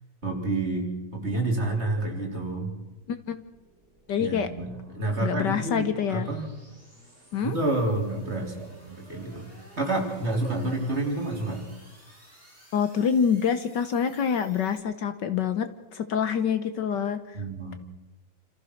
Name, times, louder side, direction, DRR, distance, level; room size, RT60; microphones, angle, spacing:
voice 1, 0.2-2.7 4.2-6.5 7.4-9.5 9.8-11.7 17.3-17.8, right 2 dB, 30° right, 0 dB, 3.6 m, -29 dB
sound 1, 3.1-14.8, equal, 5° right, 7.4 m, -56 dB
voice 2, 4.1-4.5 5.2-6.3 7.3-7.6 12.7-15.7 15.9-17.4, left 7 dB, 65° left, 10 dB, 1.5 m, -26 dB
27.5 x 15.0 x 6.5 m, 1.1 s
omnidirectional pair, 2.1 m